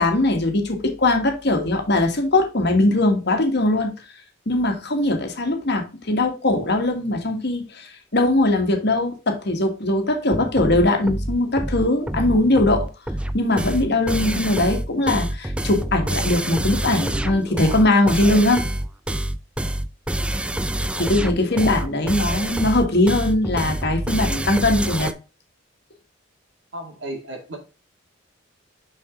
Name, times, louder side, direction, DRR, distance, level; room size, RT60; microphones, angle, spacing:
voice 1, 0.0-3.9 4.5-12.9 13.3-18.6 21.0-25.1, left 2 dB, 55° left, 1.6 m, -20 dB
sound 1, 10.3-25.1, right 1 dB, 5° right, 0.3 m, -27 dB
voice 2, 20.5-20.9 26.7-27.6, right 1 dB, 65° right, 2.3 m, -35 dB
6.0 x 5.7 x 3.7 m
head